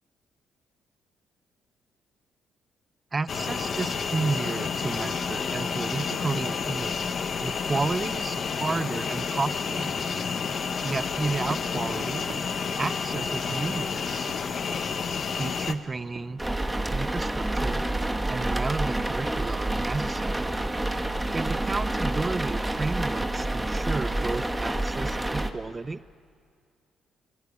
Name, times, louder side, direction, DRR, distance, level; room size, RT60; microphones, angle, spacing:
voice 1, 3.1-7.0 7.4-10.0 10.8-12.2 12.8-14.3 15.4-16.4 16.9-17.8 18.3-20.6 21.3-26.0, right 3 dB, 25° right, 16 dB, 0.7 m, -32 dB
sound 1, 3.3-15.7, left 5 dB, 50° left, 1.4 m, -30 dB
sound 2, 11.2-23.7, right 4 dB, 45° right, 2.7 m, -49 dB
sound 3, 16.4-25.5, right 1 dB, 10° right, 1.6 m, -28 dB
26.5 x 22.5 x 8.5 m, 2.2 s
cardioid pair, 90°, 0 cm